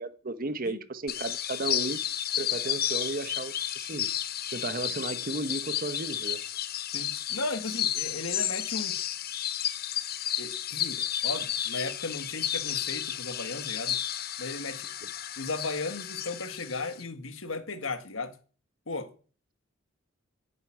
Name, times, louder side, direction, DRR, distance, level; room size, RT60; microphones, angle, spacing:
voice 1, 0.0-2.0 2.4-4.1 4.5-6.4 15.0-15.1, right 2 dB, 45° right, 1.1 m, -34 dB
sound 1, 1.1-17.0, left 11 dB, 50° left, 0.9 m, -32 dB
voice 2, 6.9-9.0 10.4-14.0 14.4-14.9 15.4-18.4 18.9-19.1, left 3 dB, 90° left, 1.8 m, -36 dB
11.0 x 8.1 x 9.1 m
head